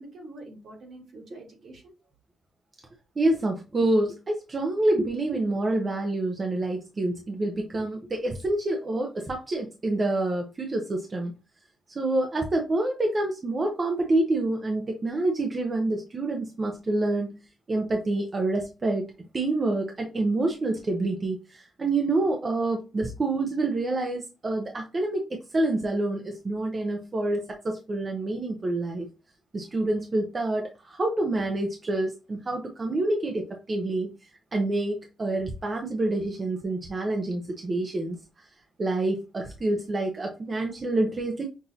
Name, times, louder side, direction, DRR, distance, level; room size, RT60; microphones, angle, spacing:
voice 1, 0.0-2.1, right 2 dB, 65° right, -1 dB, 2.0 m, -46 dB
voice 2, 3.2-11.3 11.9-17.4 17.7-19.1 19.3-29.1 29.5-34.1 34.5-38.2 38.8-41.4, right 2 dB, 30° right, 3 dB, 0.7 m, -27 dB
6.0 x 2.6 x 2.7 m, 0.29 s
wide cardioid pair, 135°, 0 cm